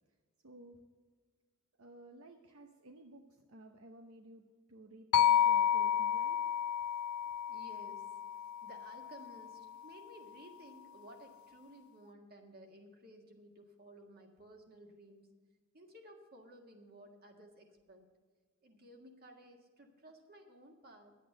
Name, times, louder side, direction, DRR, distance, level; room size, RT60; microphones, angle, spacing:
voice 1, 0.4-0.8 1.8-6.4, right 2 dB, 75° right, 4 dB, 0.9 m, -55 dB
sound 1, 5.1-9.3, left 9 dB, 80° left, 0.3 m, -31 dB
voice 2, 7.5-8.2 8.6-15.3 15.7-18.0 18.6-21.2, right 1 dB, 50° right, 3 dB, 1.8 m, -56 dB
11.0 x 8.4 x 6.6 m, 1.5 s
head